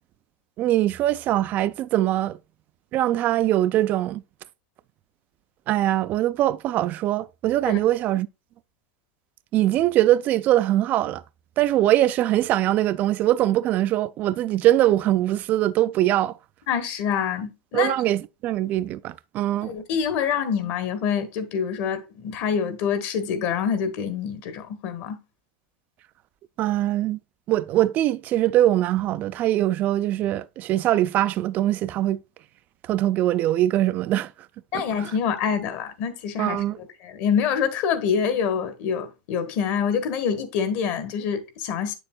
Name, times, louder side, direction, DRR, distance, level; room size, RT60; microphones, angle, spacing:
voice 1, 0.6-2.4 2.9-4.2 5.7-8.3 9.5-11.2 11.6-16.4 17.7-19.7 26.6-27.2 27.5-32.2 32.8-34.3 34.7-35.1 36.4-36.8, right 14 dB, 40° right, 0.3 m, -22 dB
voice 2, 16.7-17.9 19.6-25.2 34.7-36.6 37.0-41.9, left 7 dB, 55° left, 1.3 m, -26 dB
7.7 x 6.9 x 2.2 m
supercardioid pair, 115°, 4 cm